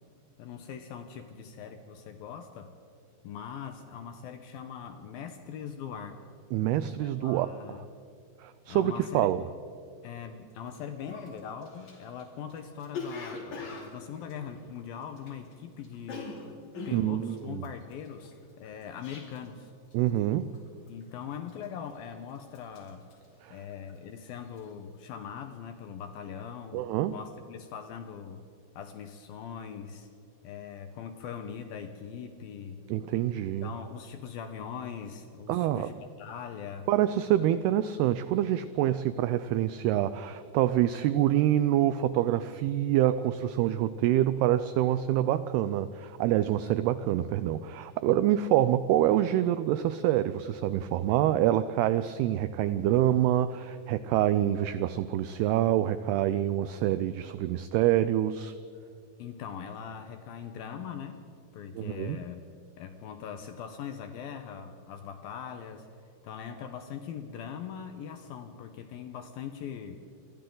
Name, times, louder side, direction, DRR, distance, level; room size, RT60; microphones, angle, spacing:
voice 1, 0.4-2.7 3.2-6.2 7.0-7.9 8.7-9.4 10.0-16.4 16.9-19.7 20.9-23.1 23.5-28.4 28.8-30.1 30.4-32.8 33.4-36.9 59.2-61.2 61.5-62.4 62.8-65.9 66.2-70.0, left 7 dB, 70° left, 7 dB, 2.3 m, -41 dB
voice 2, 6.5-7.5 8.4-9.4 16.9-17.6 19.9-20.5 23.4-23.6 26.7-27.2 32.9-33.7 35.5-35.9 36.9-58.5 61.8-62.2, right 12 dB, 85° right, 13 dB, 2.3 m, -26 dB
Cough, 10.7-10.8 11.1-15.5 15.8-19.6 19.9-20.3 20.5-21.0 21.5-22.1 22.4-24.1 24.4-24.7, left 4 dB, 45° left, 3.7 m, -42 dB
28.5 x 24.5 x 3.9 m, 2.5 s
omnidirectional pair, 5.2 m